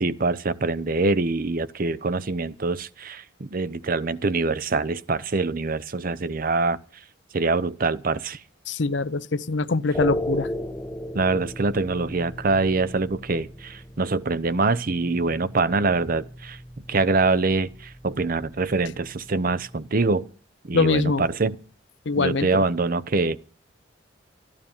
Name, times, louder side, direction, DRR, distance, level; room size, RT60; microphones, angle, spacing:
voice 1, 0.0-6.8 7.3-8.4 11.1-16.6 16.9-20.3 20.7-21.6 22.2-23.4, right 3 dB, 45° right, 0.7 m, -24 dB
voice 2, 8.7-10.5 20.7-21.2 22.1-22.6, left 3 dB, 65° left, 0.6 m, -23 dB
sound 1, 9.9-20.1, equal, 10° left, 0.8 m, -36 dB
13.5 x 11.5 x 7.1 m
head